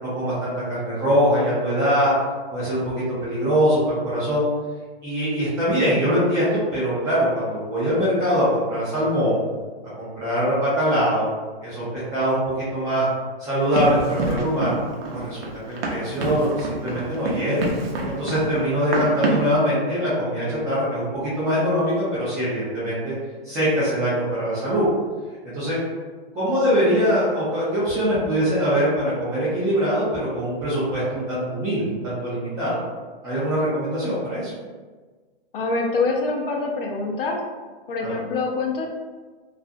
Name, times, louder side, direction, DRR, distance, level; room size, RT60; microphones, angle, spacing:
voice 1, 0.0-2.1 2.5-4.4 5.0-9.4 10.0-11.3 11.6-12.4 12.7-13.1 13.4-14.8 15.1-17.7 18.0-23.1 23.4-24.8 25.5-25.8 26.3-32.8 33.2-34.5 38.0-38.2, equal, 10° right, -10 dB, 0.4 m, -23 dB
Run, 13.7-19.6, right 3 dB, 65° right, 0.6 m, -27 dB
voice 2, 35.5-37.4 37.9-38.9, left 3 dB, 60° left, 1 dB, 0.5 m, -25 dB
2.4 x 2.0 x 2.5 m, 1.4 s
hypercardioid pair, 145°, 32 cm